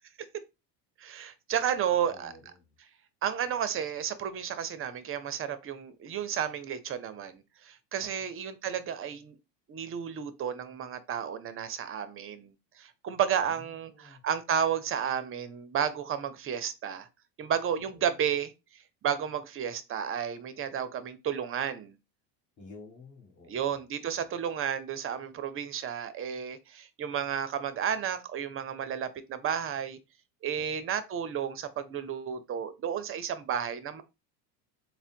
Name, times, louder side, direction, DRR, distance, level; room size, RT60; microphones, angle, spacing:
voice 1, 1.0-2.3 3.2-9.4 9.7-12.5 12.8-17.1 17.4-18.5 19.0-22.0 23.5-30.0 30.4-34.0, right 8 dB, 25° right, 0.6 m, -32 dB
voice 2, 1.9-2.7 8.0-8.3 13.4-14.2 17.8-18.0 22.6-23.8 24.1-24.2 30.6-30.9, left 3 dB, 35° left, 1.8 m, -52 dB
3.6 x 2.2 x 4.3 m
supercardioid pair, 100°, 49 cm